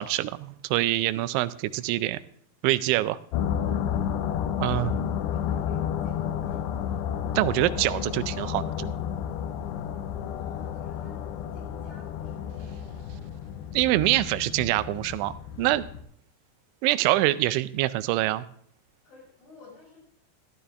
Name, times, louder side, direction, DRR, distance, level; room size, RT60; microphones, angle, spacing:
voice 1, 0.0-2.2 2.6-3.2 4.6-4.9 7.4-9.0 13.7-15.8 16.8-18.5, right 16 dB, 85° right, 14 dB, 2.9 m, -25 dB
sound 1, 3.3-16.0, left 9 dB, 80° left, 2.8 m, -31 dB
voice 2, 3.7-4.1 4.6-7.0 10.3-11.3 11.5-13.1 19.0-20.0, left 3 dB, 55° left, -4 dB, 8.6 m, -50 dB
14.0 x 11.5 x 3.4 m, 0.64 s
omnidirectional pair, 5.4 m